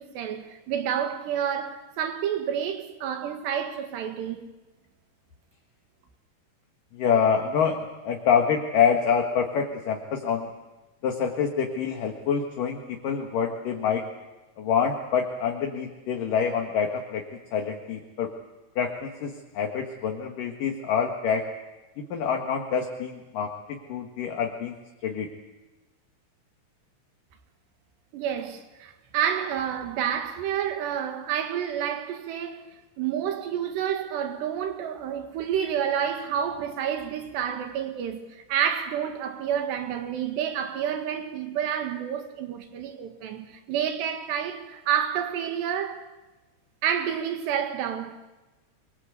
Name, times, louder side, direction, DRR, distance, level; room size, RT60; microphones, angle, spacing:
voice 1, 0.0-4.4 28.1-32.6 33.0-38.2 38.5-46.1 46.8-48.2, right 9 dB, 80° right, 4.0 m, -29 dB
voice 2, 6.9-10.5 11.0-14.0 14.6-17.2 17.5-18.3 18.8-21.4 22.0-24.8 25.0-25.3, left 7 dB, 60° left, 3.0 m, -26 dB
26.0 x 23.5 x 8.3 m
omnidirectional pair, 4.8 m